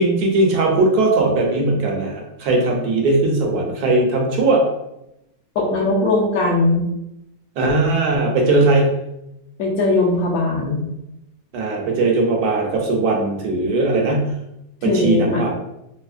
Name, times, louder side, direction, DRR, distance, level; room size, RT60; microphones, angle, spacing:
voice 1, 0.0-4.7 7.6-9.0 11.5-14.3 14.8-15.5, right 2 dB, 70° right, 1 dB, 1.1 m, -19 dB
voice 2, 5.5-6.8 9.6-10.9 14.8-15.4, left 2 dB, 70° left, -1 dB, 1.1 m, -19 dB
3.4 x 2.8 x 2.4 m, 0.86 s
omnidirectional pair, 1.8 m